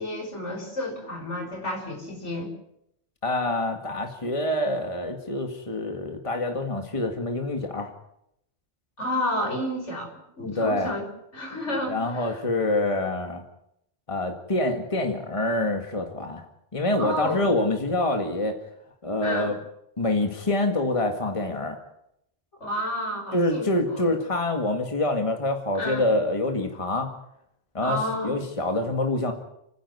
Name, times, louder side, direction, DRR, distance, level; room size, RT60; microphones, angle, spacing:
voice 1, 0.0-2.5 9.0-11.1 11.3-12.4 17.0-17.5 19.2-19.6 22.6-24.2 25.8-26.1 27.8-28.4, left 1 dB, 80° left, 2 dB, 5.6 m, -31 dB
voice 2, 3.2-7.9 10.5-11.0 11.9-13.4 14.1-16.5 16.7-18.6 19.0-19.6 20.0-21.8 23.3-27.1 27.7-29.3, left 2 dB, 25° left, 4 dB, 1.9 m, -26 dB
30.0 x 10.5 x 9.7 m, 0.80 s
omnidirectional pair, 1.2 m